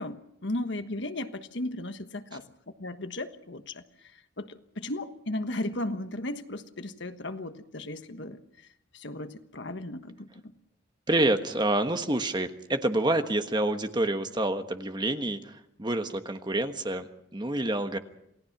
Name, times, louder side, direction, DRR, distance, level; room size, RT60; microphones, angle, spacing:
voice 1, 0.0-2.4 2.8-3.8 4.4-8.4 8.9-10.3, left 1 dB, 65° left, 9 dB, 1.4 m, -35 dB
voice 2, 11.1-18.0, right 1 dB, 25° right, 7 dB, 1.3 m, -28 dB
28.0 x 18.0 x 6.0 m, 0.78 s
head